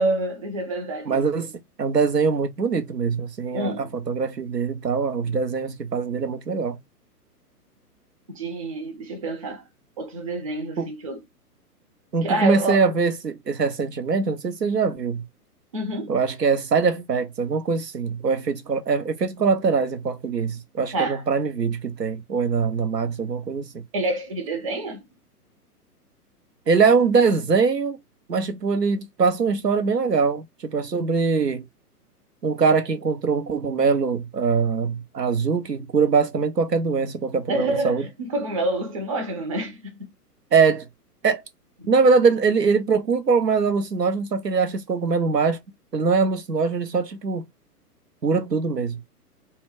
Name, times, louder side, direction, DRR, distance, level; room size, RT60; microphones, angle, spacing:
voice 1, 0.0-1.5 3.5-3.9 8.3-9.6 10.0-11.2 12.2-12.9 15.7-16.2 20.9-21.2 23.9-25.0 37.5-40.1, right 2 dB, 25° right, 0.5 m, -27 dB
voice 2, 1.1-1.5 1.8-6.8 10.8-10.9 12.1-15.2 16.1-23.8 26.7-28.0 28.3-31.6 32.4-38.0 40.5-40.9 41.2-41.4 41.9-45.6 45.9-47.4 48.2-49.0, right 5 dB, 90° right, 0.7 m, -22 dB
2.1 x 2.1 x 3.4 m
figure-of-eight pair, 120°, 47 cm